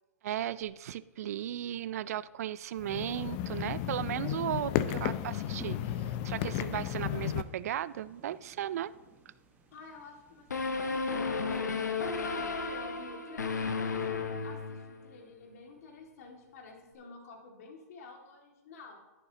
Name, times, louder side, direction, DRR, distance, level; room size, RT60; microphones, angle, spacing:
voice 1, 0.2-8.9, right 11 dB, 65° right, 16 dB, 0.4 m, -36 dB
sound 1, 2.8-7.4, left 12 dB, 40° left, 0.6 m, -33 dB
sound 2, 5.6-11.5, right 5 dB, 20° right, 1.4 m, -56 dB
voice 2, 9.7-11.9 12.3-19.0, left 3 dB, 65° left, 1 dB, 2.2 m, -50 dB
sound 3, 10.5-15.1, left 4 dB, 90° left, 1.0 m, -33 dB
11.0 x 11.0 x 2.9 m, 1.1 s
hypercardioid pair, 125°, 9 cm